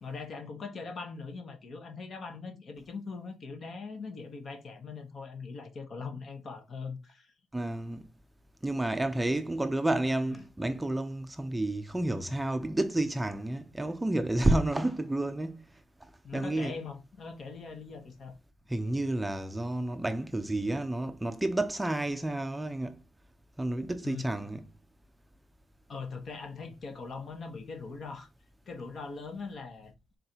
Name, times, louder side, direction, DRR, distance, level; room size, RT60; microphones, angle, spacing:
voice 1, 0.0-7.3 16.2-18.3 24.0-24.3 25.9-28.3 28.7-29.9, left 4 dB, 50° left, 1.1 m, -41 dB
voice 2, 7.5-8.1 8.6-16.8 18.7-23.0 23.6-24.6, right 1 dB, 10° right, 0.5 m, -30 dB
4.0 x 2.6 x 4.4 m
cardioid pair, 90°, 0 cm